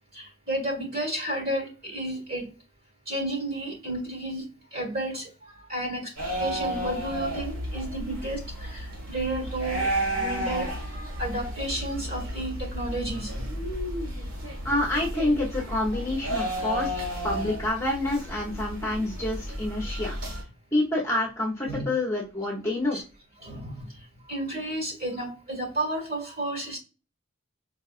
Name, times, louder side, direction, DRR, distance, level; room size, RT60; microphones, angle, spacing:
voice 1, 0.1-2.5 3.1-5.3 5.7-6.1 6.4-10.7 11.2-13.4 21.7-21.8 22.9-23.0 23.4-23.9 24.3-26.8, right 1 dB, 45° right, 1.9 m, -32 dB
sound 1, 6.2-20.4, equal, 85° right, 1.6 m, -32 dB
voice 2, 14.6-20.1 20.7-23.0, left 1 dB, 15° left, 0.8 m, -28 dB
4.7 x 2.4 x 2.5 m
head